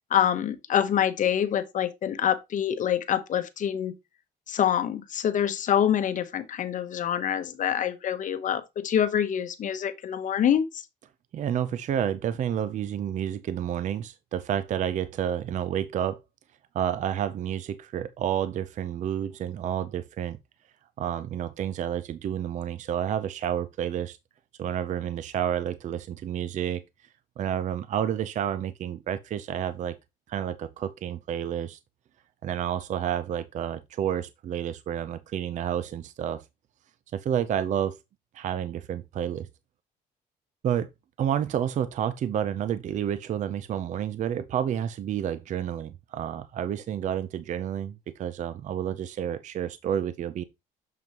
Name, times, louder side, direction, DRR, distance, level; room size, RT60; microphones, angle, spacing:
voice 1, 0.1-4.0 4.5-10.8, left 9 dB, 50° left, 0.9 m, -26 dB
voice 2, 11.3-16.2 16.7-20.4 21.0-24.2 24.6-26.8 27.4-30.0 30.3-31.8 32.4-36.4 37.1-38.0 38.3-39.5 40.6-40.9 41.2-50.4, right 9 dB, 45° right, 0.5 m, -30 dB
7.0 x 5.9 x 2.9 m
cardioid pair, 110°, 17 cm